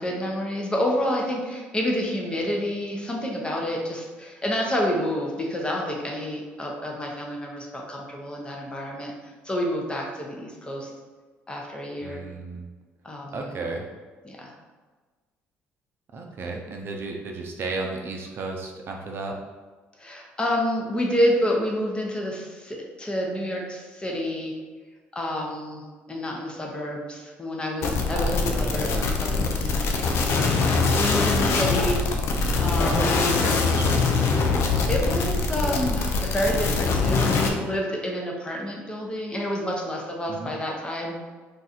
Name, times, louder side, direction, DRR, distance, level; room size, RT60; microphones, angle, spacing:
voice 1, 0.0-9.1 9.4-10.9 11.5-12.2 13.0-13.6 14.2-14.5 20.0-24.6 25.1-32.0 32.6-33.4 34.6-41.3, equal, 20° left, -1 dB, 0.8 m, -29 dB
voice 2, 12.0-12.7 13.3-13.8 16.1-19.4 28.1-29.1 32.9-34.1 40.3-40.5, right 3 dB, 50° right, 1 dB, 0.5 m, -33 dB
sound 1, 27.8-37.5, left 4 dB, 65° left, 0.4 m, -23 dB
2.5 x 2.4 x 4.1 m, 1.3 s
supercardioid pair, 85°, 5 cm